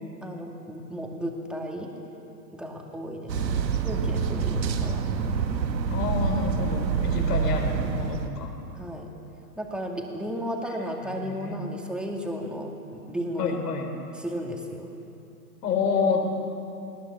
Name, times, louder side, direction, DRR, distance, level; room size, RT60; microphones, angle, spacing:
voice 1, 0.2-1.9 2.5-5.0 7.1-7.2 8.8-9.1 9.6-13.6 14.1-14.9, equal, ahead, 0 dB, 2.1 m, -34 dB
sound 1, 3.3-8.3, right 6 dB, 85° right, 1.8 m, -26 dB
voice 2, 5.9-8.5 11.2-11.6 13.4-13.9 15.6-16.3, left 4 dB, 70° left, 3 dB, 4.4 m, -28 dB
20.5 x 18.5 x 7.2 m, 2.8 s
hypercardioid pair, 130°, 49 cm